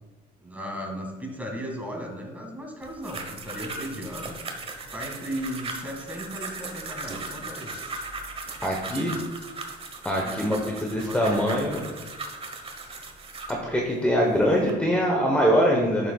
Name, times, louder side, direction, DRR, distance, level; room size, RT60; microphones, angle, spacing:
voice 1, 0.4-4.4 4.9-7.7 10.2-10.4 11.0-11.9, equal, 10° right, 0 dB, 2.1 m, -36 dB
sound 1, 2.8-13.6 14.2-14.7, right 3 dB, 35° right, 1.1 m, -38 dB
voice 2, 8.6-9.1 10.0-11.8 13.5-16.1, equal, 5° left, -1 dB, 1.1 m, -23 dB
11.0 x 6.6 x 2.4 m, 1.2 s
cardioid pair, 110°, 17 cm